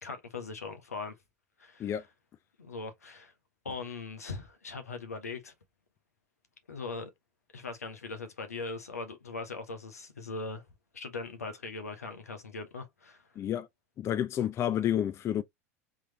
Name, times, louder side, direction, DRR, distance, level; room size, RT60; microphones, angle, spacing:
voice 1, 0.0-1.1 1.6-1.9 2.6-3.3 3.6-5.5 6.7-7.1 7.5-10.6 10.9-13.2, left 3 dB, 90° left, 1.0 m, -40 dB
voice 2, 13.4-13.7 14.0-15.4, left 10 dB, 35° left, 0.4 m, -30 dB
3.8 x 3.0 x 2.7 m
hypercardioid pair, 85°, 8 cm